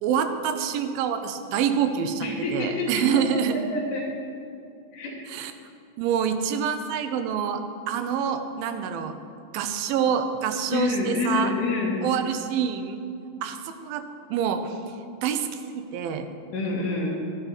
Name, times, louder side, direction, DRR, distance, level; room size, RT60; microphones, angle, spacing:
voice 1, 0.0-3.6 5.3-5.5 6.0-7.6 7.9-9.2 9.5-11.5 12.0-13.0 13.4-14.0 14.3-14.8 15.2-16.3, right 8 dB, 90° right, 8 dB, 2.5 m, -26 dB
voice 2, 2.2-4.1 4.9-5.2 10.7-12.0 16.5-17.2, left 3 dB, 75° left, -4 dB, 2.7 m, -27 dB
12.5 x 9.4 x 4.1 m, 2.5 s
omnidirectional pair, 4.1 m